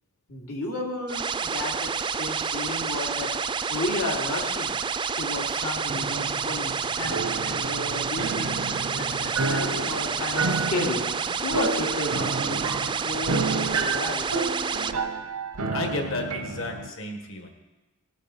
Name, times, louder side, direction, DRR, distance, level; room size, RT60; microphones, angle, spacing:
voice 1, 0.3-3.3 3.7-4.8 5.1-8.6 8.9-11.0 11.4-12.6 13.0-14.3, left 1 dB, 85° left, -3 dB, 2.8 m, -32 dB
sound 1, 1.1-14.9, right 6 dB, 20° right, 0.3 m, -29 dB
sound 2, 5.9-16.9, right 3 dB, 85° right, 0.8 m, -31 dB
voice 2, 15.7-17.5, left 2 dB, 60° left, 3 dB, 1.7 m, -32 dB
17.5 x 8.1 x 4.3 m, 1.1 s
head